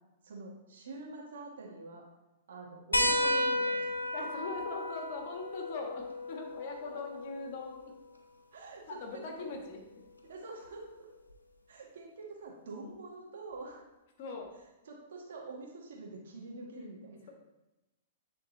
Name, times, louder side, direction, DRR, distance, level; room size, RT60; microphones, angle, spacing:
voice 1, 0.2-2.0 2.5-3.9 4.2-4.3 8.5-9.0 9.4-9.5 10.3-11.1 11.7-13.8 14.9-17.2, right 3 dB, 60° right, -2 dB, 1.7 m, -45 dB
sound 1, 2.9-8.0 9.5-9.6 11.3-11.4, left 1 dB, 85° left, 0.6 m, -33 dB
voice 2, 4.1-7.9 8.9-9.8 14.2-14.6, left 3 dB, 50° left, 2 dB, 1.4 m, -41 dB
9.3 x 3.7 x 4.1 m, 1.0 s
figure-of-eight pair, 105°, 0 cm